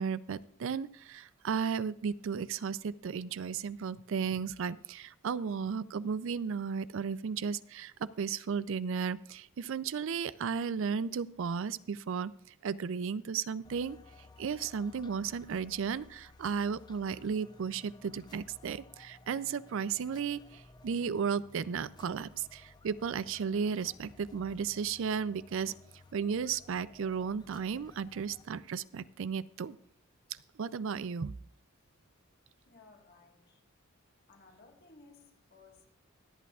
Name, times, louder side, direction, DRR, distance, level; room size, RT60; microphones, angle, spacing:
voice 1, 0.0-12.3 12.6-14.0 14.4-25.7 26.1-29.8 30.6-31.3, right 6 dB, 65° right, 0.4 m, -34 dB
sound 1, 13.6-28.4, left 3 dB, 20° left, 0.4 m, -57 dB
voice 2, 32.6-33.6 34.3-35.9, left 3 dB, 50° left, 1.7 m, -59 dB
25.0 x 8.4 x 2.4 m
head